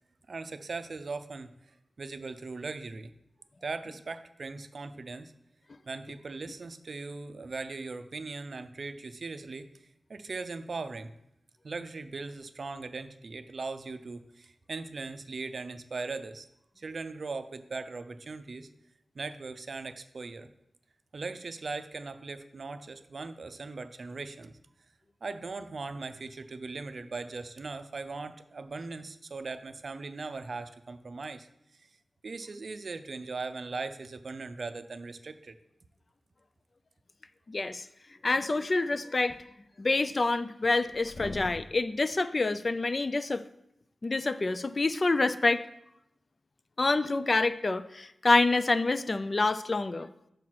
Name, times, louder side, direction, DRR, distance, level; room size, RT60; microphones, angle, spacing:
voice 1, 0.3-1.5 2.0-3.1 3.6-5.3 5.9-9.7 10.1-11.1 11.6-16.5 16.8-18.7 19.1-20.5 21.1-24.6 25.2-31.5 32.2-35.5, right 3 dB, 60° right, 10 dB, 0.4 m, -39 dB
voice 2, 37.5-37.9 38.2-39.4 39.8-43.4 44.0-45.6 46.8-50.1, left 3 dB, 40° left, 12 dB, 0.3 m, -27 dB
5.7 x 4.9 x 4.6 m, 0.81 s
wide cardioid pair, 85°, 0 cm